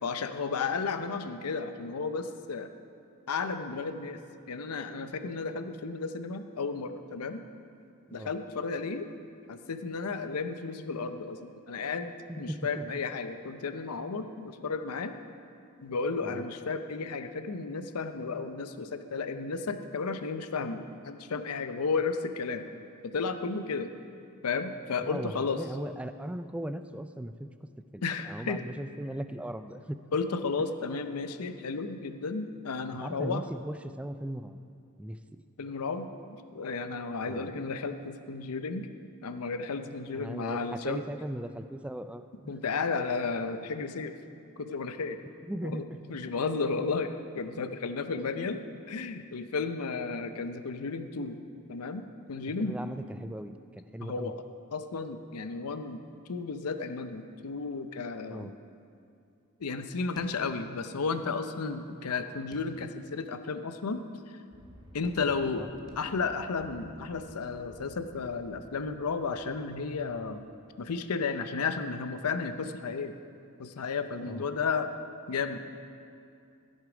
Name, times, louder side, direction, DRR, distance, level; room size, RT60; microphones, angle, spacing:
voice 1, 0.0-2.7 3.3-4.2 4.5-7.4 8.1-9.1 9.5-15.1 15.8-22.7 23.0-23.9 24.4-25.6 28.0-28.6 30.1-33.4 35.6-36.1 36.5-38.9 39.2-41.0 42.5-44.1 44.6-45.2 45.6-45.8 46.1-48.6 48.9-51.4 51.7-52.0 52.3-52.8 54.0-54.3 54.7-56.0 56.3-58.5 59.6-64.0 64.9-65.7 66.0-70.5 70.8-73.1 73.6-74.9 75.3-75.6, left 4 dB, 85° left, 9 dB, 0.6 m, -33 dB
voice 2, 12.3-12.9 16.2-16.4 25.0-30.0 32.9-34.6 35.0-35.4 37.2-37.5 40.1-42.5 45.4-46.2 48.3-48.6 52.6-54.3 58.3-58.6 65.6-65.7 74.2-74.4, right 1 dB, 5° right, 10 dB, 0.3 m, -38 dB
sound 1, 60.2-61.0 61.3-61.4 62.5-63.2 63.7-63.8 65.0-65.6 65.9-66.5, left 1 dB, 20° left, 0.8 m, -52 dB
Aircraft, 64.5-70.8, equal, 20° right, 1.1 m, -55 dB
15.5 x 6.5 x 5.0 m, 2.4 s
head